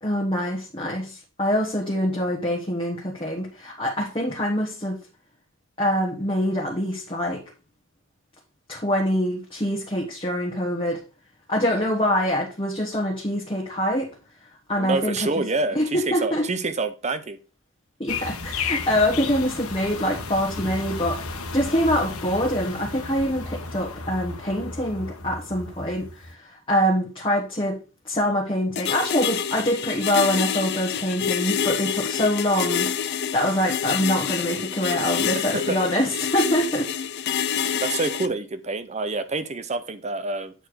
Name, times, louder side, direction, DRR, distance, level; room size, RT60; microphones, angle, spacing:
voice 1, 0.0-5.0 5.8-7.4 8.7-11.0 11.5-14.1 14.7-15.2 15.7-16.5 18.0-27.8 28.0-36.9, equal, 25° left, -2 dB, 1.3 m, -25 dB
voice 2, 14.8-17.4 35.3-35.8 37.8-40.5, right 3 dB, 30° right, 11 dB, 0.6 m, -27 dB
sound 1, 18.1-26.3, left 4 dB, 75° left, 1.2 m, -33 dB
sound 2, 28.8-38.3, left 8 dB, 50° left, 0.5 m, -27 dB
7.9 x 4.4 x 4.7 m, 0.33 s
head